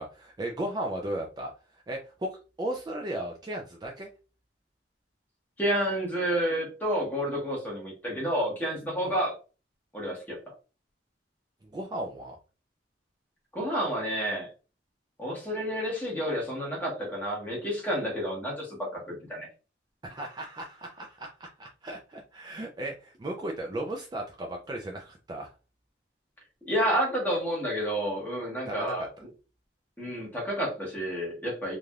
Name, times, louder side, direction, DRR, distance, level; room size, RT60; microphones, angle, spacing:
voice 1, 0.0-2.3 2.6-4.1 9.0-9.2 11.6-12.4 20.0-25.5 28.7-29.1, right 1 dB, 25° right, 0 dB, 0.4 m, -36 dB
voice 2, 5.6-9.3 9.9-10.4 13.5-14.5 15.2-19.5 26.6-29.1 30.0-31.8, equal, 10° left, -2 dB, 1.1 m, -30 dB
3.2 x 2.5 x 2.2 m, 0.34 s
head